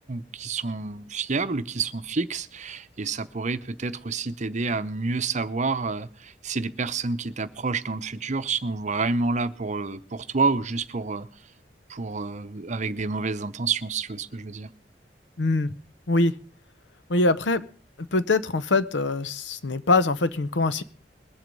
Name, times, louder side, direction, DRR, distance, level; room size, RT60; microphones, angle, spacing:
voice 1, 0.1-11.3 11.9-14.7, right 4 dB, 40° right, 12 dB, 0.7 m, -29 dB
voice 2, 15.4-15.7 16.1-16.3 17.1-17.6 18.0-20.8, left 3 dB, 85° left, 14 dB, 0.8 m, -23 dB
21.0 x 7.8 x 5.4 m, 0.40 s
head